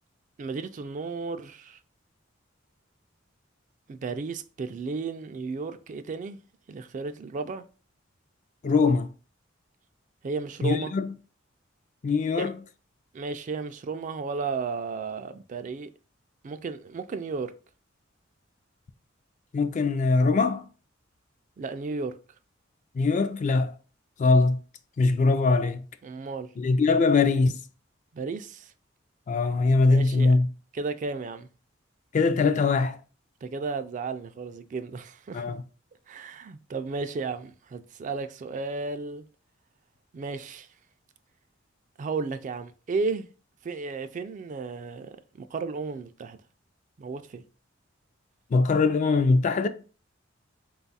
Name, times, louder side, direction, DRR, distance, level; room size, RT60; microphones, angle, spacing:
voice 1, 0.4-1.8 3.9-6.4 6.7-7.7 10.2-10.9 12.3-12.5 13.1-15.9 16.4-17.5 21.6-22.1 26.0-26.5 28.1-28.7 29.9-30.3 30.7-31.5 33.4-35.4 36.1-39.2 40.1-40.7 42.0-43.3 43.6-46.4 47.0-47.4, right 4 dB, 40° right, 0.3 m, -33 dB
voice 2, 8.6-9.1 10.6-11.1 12.0-12.5 19.5-20.6 23.0-23.7 24.2-24.6 25.0-25.8 26.6-27.6 29.3-30.5 32.1-33.0 35.3-35.6 48.5-49.7, left 3 dB, 40° left, 0.3 m, -22 dB
3.9 x 2.4 x 4.0 m
head